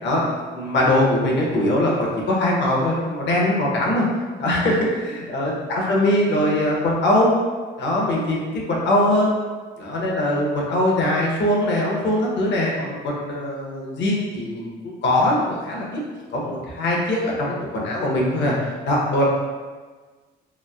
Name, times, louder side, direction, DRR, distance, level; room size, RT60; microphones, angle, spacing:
voice 1, 0.0-4.1 4.4-7.3 7.8-9.3 9.8-14.7 15.0-16.0 16.3-18.5 18.9-19.2, left 1 dB, 65° left, -3 dB, 0.8 m, -21 dB
3.1 x 2.3 x 2.3 m, 1.4 s
cardioid pair, 90°, 20 cm